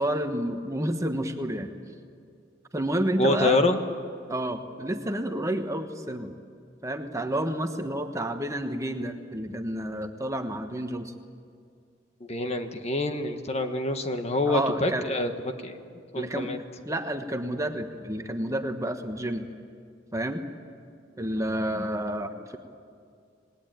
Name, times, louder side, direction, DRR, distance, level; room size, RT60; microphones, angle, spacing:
voice 1, 0.0-1.7 2.7-3.6 4.3-6.3 6.8-11.1 14.5-15.1 16.1-16.5 16.9-19.5 20.1-20.4 21.2-22.6, right 1 dB, 15° right, 6 dB, 1.2 m, -30 dB
voice 2, 3.2-3.8 12.2-15.8 16.1-16.6, left 2 dB, 35° left, 6 dB, 1.5 m, -26 dB
27.5 x 20.0 x 9.3 m, 2.2 s
head